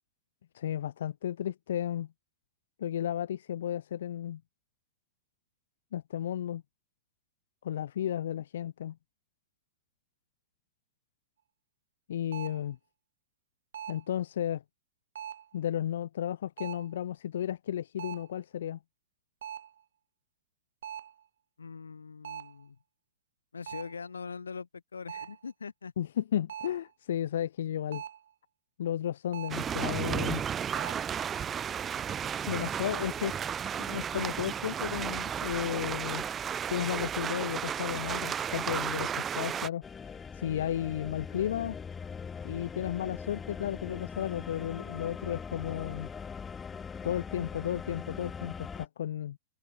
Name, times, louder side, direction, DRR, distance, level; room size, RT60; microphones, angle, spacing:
voice 1, 0.5-2.1 2.8-4.4 5.9-6.6 7.6-9.0 12.1-12.8 13.9-14.6 15.5-18.8 26.0-28.0 28.8-30.4 32.5-33.3 33.8-36.3 36.7-41.8 42.4-46.1 47.0-49.4, left 10 dB, 70° left, 0.5 m, -33 dB
sound 1, 12.3-12.7 13.7-14.1 15.2-15.6 16.6-17.0 18.0-18.4 19.4-19.8 20.8-21.2 22.2-22.6 23.7-24.0 25.1-25.4 26.5-26.9 27.9-28.3 29.3-29.7 30.7-31.0, right 9 dB, 75° right, 0.7 m, -42 dB
voice 2, 21.6-22.8 23.5-25.9, left 5 dB, 90° left, 2.0 m, -42 dB
sound 2, 29.5-39.7, right 8 dB, 25° right, 0.8 m, -33 dB
sound 3, 39.8-48.9, left 6 dB, 20° left, 1.4 m, -41 dB
hypercardioid pair, 110°, 0 cm